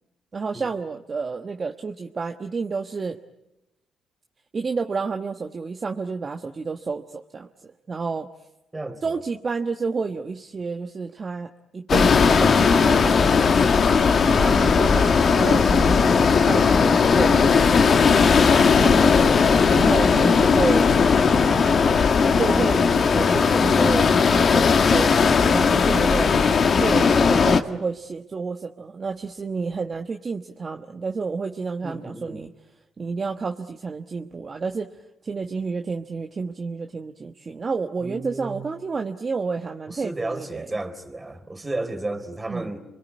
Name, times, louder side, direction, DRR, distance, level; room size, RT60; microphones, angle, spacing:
voice 1, 0.3-3.2 4.5-8.3 9.0-13.8 14.3-18.3 18.8-20.9 22.3-26.3 26.8-32.5 33.0-34.9 35.2-40.7 42.5-42.7, right 4 dB, 40° right, 1.3 m, -30 dB
voice 2, 8.7-9.2 31.8-32.4 38.0-38.7 39.9-42.9, right 2 dB, 20° right, 3.7 m, -33 dB
sound 1, 11.9-27.6, left 5 dB, 50° left, 1.7 m, -18 dB
28.0 x 22.0 x 9.5 m
supercardioid pair, 60°, 0 cm